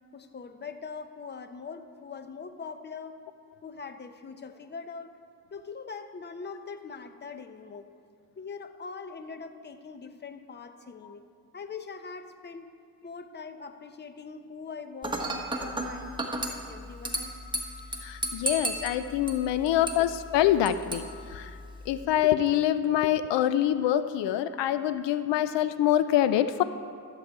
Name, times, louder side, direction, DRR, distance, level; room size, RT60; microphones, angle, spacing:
voice 1, 0.1-3.2 3.6-5.2 5.5-7.9 8.4-11.2 11.5-12.7 13.0-17.3, left 5 dB, 25° left, 9 dB, 0.7 m, -42 dB
Dishes pots and pans / Glass, 15.0-22.0, right 1 dB, 10° right, 1.3 m, -35 dB
voice 2, 18.0-21.0 21.3-21.5 21.9-26.6, left 11 dB, 85° left, 13 dB, 0.5 m, -25 dB
14.0 x 7.8 x 4.7 m, 2.2 s
cardioid pair, 85°, 42 cm